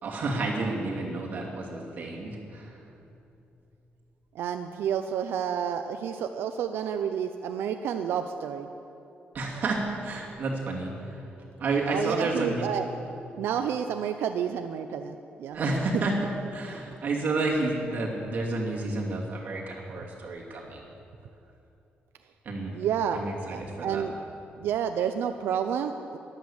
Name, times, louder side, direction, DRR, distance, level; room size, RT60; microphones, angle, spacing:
voice 1, 0.0-2.8 9.3-11.2 11.6-12.7 15.5-16.1 16.5-20.9 22.4-22.8 23.1-24.0, right 2 dB, 45° right, -2 dB, 2.7 m, -30 dB
voice 2, 4.3-8.7 11.9-12.9 13.4-15.6 22.7-23.2 23.5-24.1 24.6-26.2, right 8 dB, 90° right, 7 dB, 0.6 m, -30 dB
14.0 x 11.5 x 7.3 m, 2.8 s
cardioid pair, 155°, 4 cm